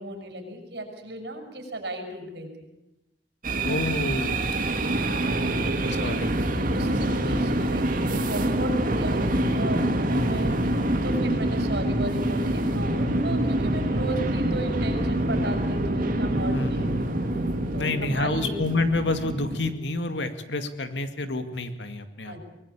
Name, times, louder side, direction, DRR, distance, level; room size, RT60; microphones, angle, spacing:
voice 1, 0.0-2.5 5.2-6.2 6.7-17.1 17.7-18.5 22.2-22.4, right 2 dB, 70° right, 4 dB, 6.8 m, -36 dB
sound 1, 3.4-19.7, right 1 dB, 50° right, 2.4 m, -26 dB
voice 2, 3.6-4.4 5.8-6.3 10.1-10.6 16.5-17.0 17.7-22.4, left 2 dB, 90° left, 8 dB, 2.3 m, -28 dB
24.5 x 19.5 x 8.5 m, 0.94 s
head